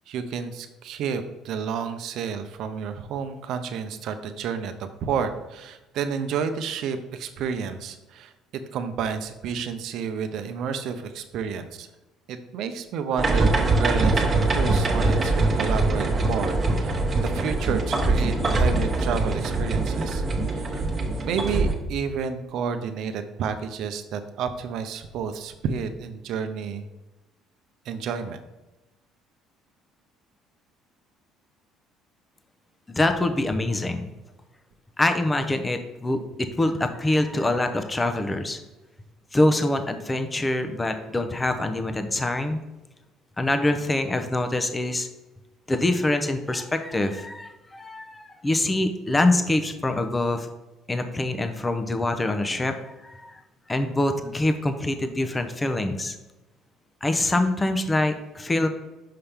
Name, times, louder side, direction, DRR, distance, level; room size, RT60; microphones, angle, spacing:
voice 1, 0.1-8.3 8.7-11.9 12.3-20.2 20.5-20.8 21.2-26.9 27.8-28.4, right 6 dB, 70° right, 8 dB, 0.7 m, -30 dB
sound 1, 13.2-21.7, right 2 dB, 30° right, 1.2 m, -23 dB
voice 2, 32.9-34.1 35.0-38.6 39.3-42.6 43.4-45.1 45.7-50.5 50.9-52.8 53.0-53.4 53.7-56.2 57.0-58.7, left 2 dB, 15° left, 7 dB, 0.7 m, -25 dB
5.7 x 5.5 x 3.4 m, 1.0 s
cardioid pair, 95°, 0 cm